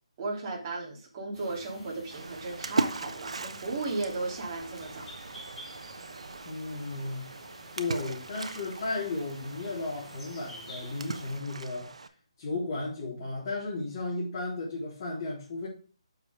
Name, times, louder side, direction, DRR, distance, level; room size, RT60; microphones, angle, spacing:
voice 1, 0.2-5.1, right 3 dB, 25° right, 3.1 m, -35 dB
sound 1, 1.3-11.4, equal, 10° left, 3.6 m, -50 dB
Splash splatter, 2.1-12.1, right 3 dB, 80° right, 1.0 m, -38 dB
voice 2, 6.4-7.3 7.7-11.9 12.4-15.7, left 2 dB, 35° left, 3.8 m, -34 dB
8.0 x 6.7 x 3.6 m
hypercardioid pair, 165°, 3 cm